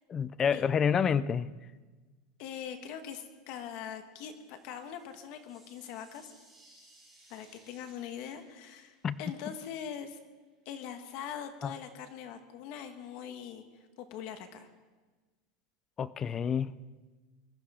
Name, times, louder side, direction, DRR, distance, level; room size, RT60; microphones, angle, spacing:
voice 1, 0.1-1.5 9.0-9.2 11.6-11.8 16.0-16.7, left 7 dB, 15° left, 17 dB, 0.4 m, -28 dB
voice 2, 2.4-6.3 7.3-10.2 10.6-13.6 14.0-14.7, left 8 dB, 45° left, 8 dB, 1.4 m, -42 dB
sound 1, 4.1-10.0, right 2 dB, 5° right, 5.3 m, -63 dB
21.5 x 13.0 x 5.0 m, 1.3 s
supercardioid pair, 175°, 2 cm